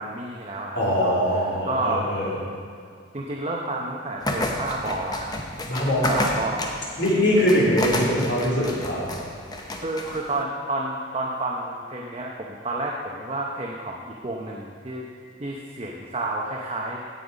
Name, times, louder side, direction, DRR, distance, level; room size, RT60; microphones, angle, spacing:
voice 1, 0.0-2.1 3.1-5.3 6.1-6.8 9.8-15.1 15.4-17.0, right 2 dB, 35° right, -2 dB, 0.8 m, -30 dB
voice 2, 0.7-2.4 5.6-6.1 7.0-9.1, equal, 75° left, -7 dB, 3.2 m, -22 dB
sound 1, 4.2-10.4, left 1 dB, 20° left, 0.9 m, -31 dB
16.0 x 5.6 x 5.1 m, 2.1 s
head